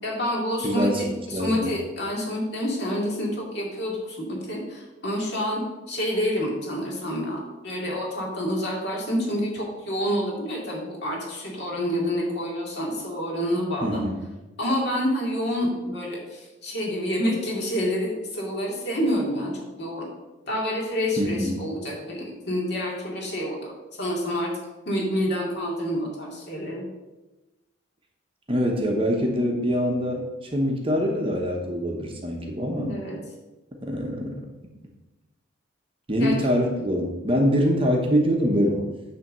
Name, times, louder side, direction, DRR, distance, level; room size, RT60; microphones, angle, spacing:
voice 1, 0.0-5.6 5.9-14.0 14.6-20.1 20.5-23.7 24.0-24.5 24.9-26.8 32.8-33.2 36.2-36.3, equal, 50° left, -2 dB, 2.2 m, -28 dB
voice 2, 0.6-1.0 1.3-1.8 13.8-14.2 21.2-21.6 28.5-32.9 33.8-34.5 36.1-38.9, equal, 25° right, 1 dB, 0.9 m, -24 dB
9.1 x 3.4 x 6.7 m, 1.1 s
head